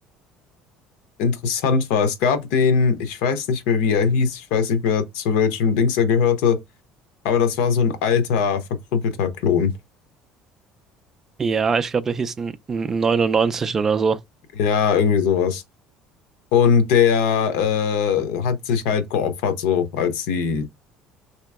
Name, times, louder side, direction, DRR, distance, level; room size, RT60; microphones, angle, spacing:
voice 1, 1.2-6.6 7.2-9.7 14.6-15.6 16.5-20.7, left 6 dB, 90° left, 0.7 m, -20 dB
voice 2, 11.4-14.2, right 5 dB, 20° right, 0.3 m, -22 dB
3.2 x 2.9 x 3.4 m
cardioid pair, 175°, 2 cm